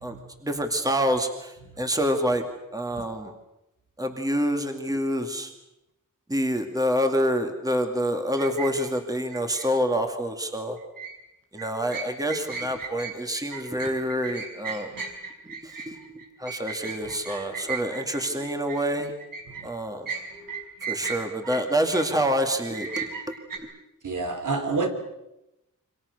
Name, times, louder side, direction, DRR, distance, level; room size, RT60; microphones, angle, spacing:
voice 1, 0.0-2.4 2.7-3.3 4.0-5.5 6.3-10.8 11.5-14.9 15.4-16.0 16.4-19.1 19.6-20.1 20.8-23.1 23.6-23.7, equal, 10° right, 5 dB, 2.4 m, -27 dB
sound 1, 8.4-9.7 10.8-11.2 11.6-19.7 20.1-22.2 22.6-23.6, right 5 dB, 90° right, 5.2 m, -36 dB
voice 2, 24.0-24.9, right 3 dB, 65° right, 6 dB, 3.5 m, -29 dB
28.5 x 26.0 x 6.7 m, 0.90 s
wide cardioid pair, 170°, 32 cm